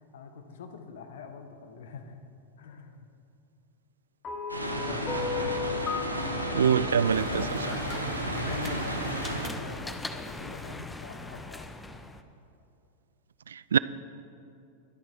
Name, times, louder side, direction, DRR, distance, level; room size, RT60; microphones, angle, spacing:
voice 1, 0.0-2.2 2.6-3.1 4.9-5.3 6.9-11.7, left 4 dB, 60° left, 7 dB, 1.2 m, -43 dB
sound 1, 4.2-8.6, left 6 dB, 30° left, 1.4 m, -36 dB
sound 2, 4.5-9.5, right 1 dB, 85° right, 1.5 m, -32 dB
voice 2, 6.5-7.4 13.5-13.8, right 8 dB, 70° right, 18 dB, 0.3 m, -24 dB
sound 3, 7.0-12.2, left 2 dB, 10° left, 0.7 m, -40 dB
22.0 x 8.9 x 4.5 m, 2.5 s
figure-of-eight pair, 90°, 0 cm